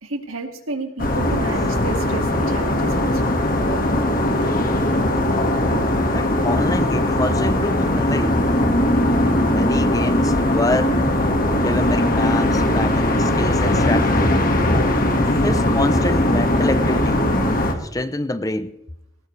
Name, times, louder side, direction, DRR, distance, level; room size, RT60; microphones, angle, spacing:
voice 1, 0.0-3.3 8.9-9.1 15.0-15.2, right 2 dB, 85° right, 5 dB, 2.2 m, -32 dB
sound 1, 1.0-17.7, left 1 dB, 40° left, 1.8 m, -19 dB
voice 2, 6.1-8.4 9.4-11.0 11.6-14.4 15.3-17.2 17.8-18.7, left 1 dB, 15° left, 11 dB, 0.6 m, -26 dB
19.0 x 18.5 x 3.3 m, 0.76 s
head